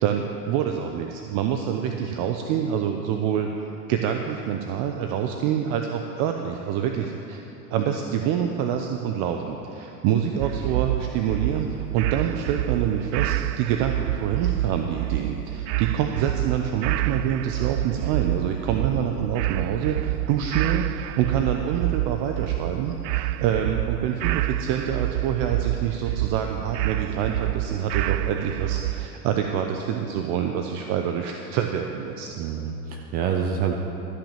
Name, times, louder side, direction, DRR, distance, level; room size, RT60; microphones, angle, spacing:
voice 1, 0.0-3.5 3.9-7.4 7.7-32.4, right 8 dB, 40° right, 4 dB, 0.7 m, -26 dB
sound 1, 10.4-29.1, right 15 dB, 75° right, 0.5 m, -28 dB
voice 2, 18.7-19.0 32.4-33.7, right 7 dB, 20° right, 3 dB, 0.3 m, -27 dB
13.0 x 5.9 x 7.3 m, 2.9 s
hypercardioid pair, 105°, 49 cm